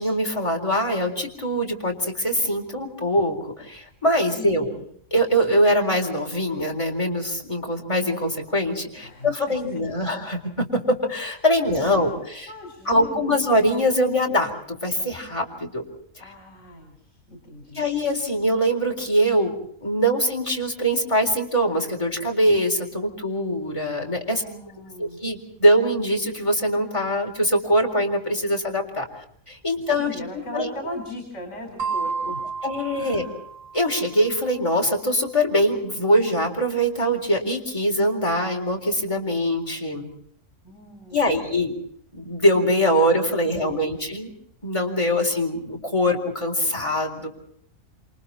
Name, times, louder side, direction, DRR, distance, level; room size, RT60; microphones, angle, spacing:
voice 1, 0.0-4.7 5.1-12.5 12.9-15.8 17.7-19.5 19.8-24.4 25.0-29.1 29.5-30.1 30.5-30.7 32.6-33.2 33.7-40.1 41.1-41.7 42.1-44.3 44.6-47.3, equal, 25° left, 1 dB, 4.2 m, -23 dB
voice 2, 4.4-4.8 9.0-9.8 11.6-12.1 12.5-13.3 16.2-17.8 24.3-25.2 30.0-32.4 32.9-33.3 40.6-41.5 43.6-44.0, left 1 dB, 65° left, 3 dB, 5.1 m, -39 dB
sound 1, 31.8-34.3, right 5 dB, 75° right, 1.7 m, -31 dB
28.0 x 27.5 x 4.3 m, 0.66 s
omnidirectional pair, 1.3 m